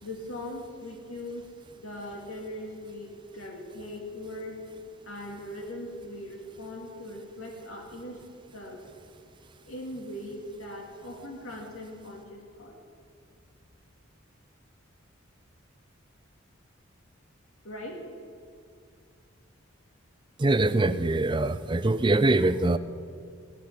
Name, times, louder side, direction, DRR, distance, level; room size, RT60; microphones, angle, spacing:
voice 1, 0.0-4.6 5.0-8.2 8.5-8.8 9.6-12.8 17.6-18.1, left 1 dB, 80° left, 1 dB, 2.2 m, -40 dB
voice 2, 20.4-22.8, right 2 dB, 20° right, 13 dB, 0.4 m, -23 dB
17.5 x 10.5 x 5.9 m, 2.3 s
head